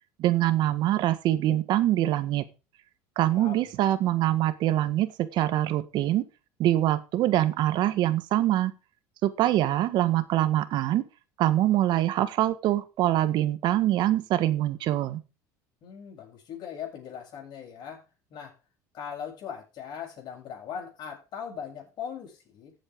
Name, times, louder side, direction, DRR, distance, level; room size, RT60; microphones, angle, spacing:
voice 1, 0.2-2.4 3.2-6.3 6.6-8.7 9.2-11.0 11.4-15.2, right 13 dB, 60° right, 13 dB, 1.5 m, -24 dB
voice 2, 3.2-3.7 15.8-18.5 18.9-22.7, left 8 dB, 50° left, 1 dB, 7.5 m, -40 dB
15.0 x 7.9 x 3.7 m, 0.31 s
supercardioid pair, 100°, 9 cm